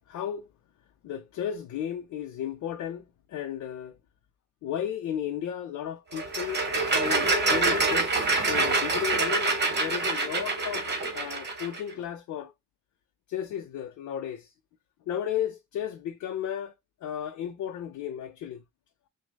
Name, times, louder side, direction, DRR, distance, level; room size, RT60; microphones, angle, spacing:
voice 1, 0.1-0.5 1.0-3.9 4.6-6.6 6.9-12.5 13.3-14.5 15.1-16.7 17.0-18.6, left 10 dB, 70° left, 0.6 m, -34 dB
sound 1, 6.1-11.8, right 3 dB, 35° right, 1.3 m, -26 dB
6.1 x 2.2 x 2.2 m
cardioid pair, 90°, 30 cm